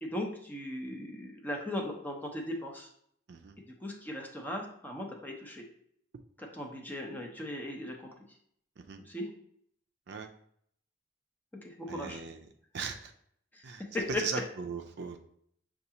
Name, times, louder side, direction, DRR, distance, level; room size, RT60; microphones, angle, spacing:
voice 1, 0.0-2.9 3.8-5.6 6.4-8.1 9.1-9.3 11.6-12.2 13.9-14.4, left 1 dB, 10° left, 0 dB, 0.6 m, -37 dB
voice 2, 11.9-12.4 12.7-13.1 13.6-13.8 14.2-15.2, right 5 dB, 65° right, 5 dB, 0.4 m, -38 dB
6.5 x 2.4 x 2.8 m, 0.67 s
head